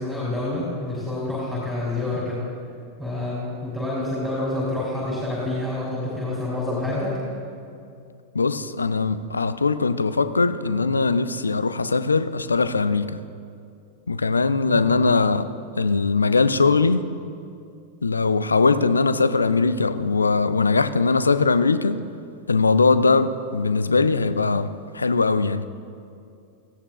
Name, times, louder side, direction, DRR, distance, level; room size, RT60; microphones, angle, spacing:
voice 1, 0.0-2.4 3.0-7.2, left 2 dB, ahead, 3.2 m, -27 dB
voice 2, 8.3-13.2 14.1-17.1 18.0-22.0 22.5-25.7, left 4 dB, 75° left, 0.4 m, -21 dB
16.5 x 16.0 x 2.4 m
figure-of-eight pair, 90°, 0 cm